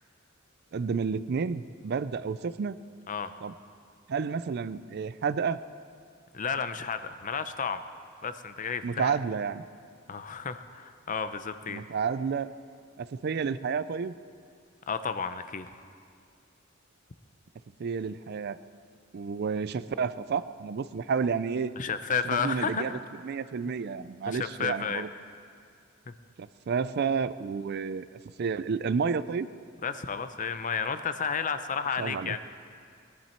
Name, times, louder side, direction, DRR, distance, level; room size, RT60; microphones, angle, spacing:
voice 1, 0.7-2.7 3.4-3.5 4.1-5.6 8.8-9.6 11.7-12.5 13.0-14.2 17.8-18.6 19.1-21.7 22.2-23.0 23.2-25.1 26.4-28.1 28.4-29.5 32.0-32.3, right 5 dB, 55° right, 15 dB, 0.4 m, -30 dB
voice 2, 6.3-7.8 8.2-9.1 10.1-11.8 14.9-15.7 21.8-23.2 24.3-25.0 26.1-26.2 29.8-32.4, left 6 dB, 40° left, 11 dB, 0.6 m, -32 dB
20.0 x 11.0 x 4.4 m, 2.2 s
head